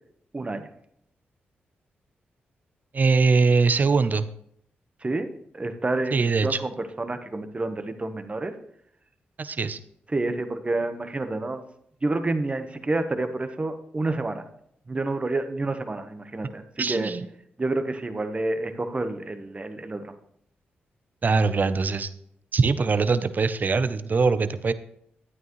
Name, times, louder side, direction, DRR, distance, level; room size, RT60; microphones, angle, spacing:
voice 1, 0.3-0.7 5.0-5.3 5.5-8.5 10.1-11.6 12.0-14.4 14.9-17.1 17.6-20.1, right 2 dB, 30° right, 8 dB, 1.1 m, -29 dB
voice 2, 2.9-4.3 6.1-6.6 9.4-9.8 16.8-17.3 21.2-22.1 22.5-24.7, right 4 dB, 50° right, 13 dB, 0.6 m, -22 dB
11.0 x 9.2 x 3.1 m, 0.71 s
cardioid pair, 55°, 4 cm